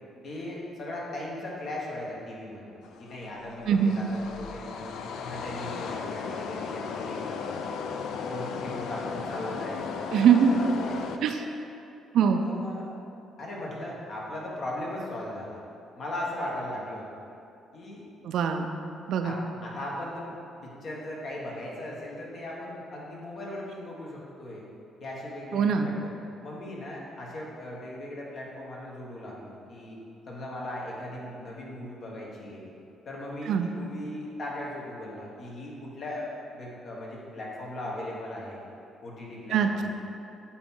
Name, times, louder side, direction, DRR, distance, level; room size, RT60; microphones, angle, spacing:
voice 1, 0.2-2.7 3.0-4.9 5.2-7.6 8.2-10.1 10.4-11.2 12.1-12.9 13.4-15.6 16.0-17.0 17.7-18.0 19.2-20.4 20.6-24.7 25.0-26.1 26.4-30.0 30.3-32.7 33.0-38.6 39.0-39.9, left 1 dB, 55° left, -3 dB, 1.3 m, -38 dB
sound 1, 2.8-11.2, left 5 dB, 80° left, 0.3 m, -36 dB
voice 2, 3.7-4.0 10.1-10.5 11.2-11.3 12.1-12.5 18.2-18.7 19.1-19.3 25.5-25.9 33.5-33.7 39.5-39.7, right 7 dB, 75° right, 6 dB, 0.4 m, -22 dB
8.5 x 3.0 x 3.7 m, 2.7 s
cardioid pair, 85°, 0 cm